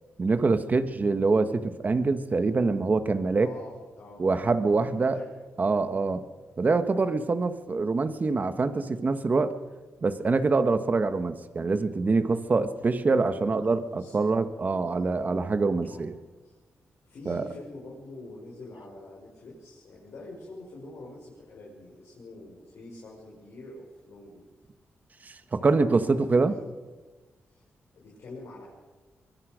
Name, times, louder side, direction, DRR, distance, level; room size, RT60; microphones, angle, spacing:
voice 1, 0.2-3.5 4.2-5.2 5.6-6.2 6.6-9.5 10.0-16.1 17.3-17.5 25.2-26.6, right 3 dB, 35° right, 9 dB, 1.5 m, -25 dB
voice 2, 3.4-4.2 4.6-5.3 6.4-6.5 13.3-14.3 15.8-16.1 16.4-16.6 17.0-24.4 25.6-26.6 27.5-27.6 27.9-28.7, left 2 dB, 75° left, -4 dB, 5.7 m, -46 dB
23.0 x 23.0 x 5.2 m, 1.3 s
cardioid pair, 105°, 5 cm